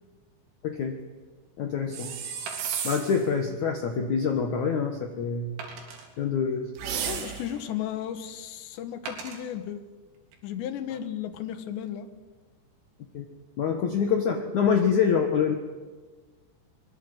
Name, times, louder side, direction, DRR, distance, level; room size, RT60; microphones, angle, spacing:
voice 1, 0.6-1.0 1.6-2.1 2.8-5.5 6.2-6.7 13.1-13.2 13.6-15.5, left 6 dB, 90° left, 4 dB, 1.6 m, -25 dB
Wood, 0.9-1.0 2.5-3.1 3.7-3.8 4.3-4.4 5.6-6.1 6.9-7.6 9.1-9.4 10.2-10.4, right 4 dB, 90° right, 6.2 m, -41 dB
sound 1, 1.9-3.3 6.8-7.6, right 8 dB, 60° right, 4.1 m, -33 dB
voice 2, 7.0-9.8 10.4-12.1, left 10 dB, 70° left, 10 dB, 3.3 m, -34 dB
24.5 x 22.0 x 8.0 m, 1.4 s
omnidirectional pair, 5.8 m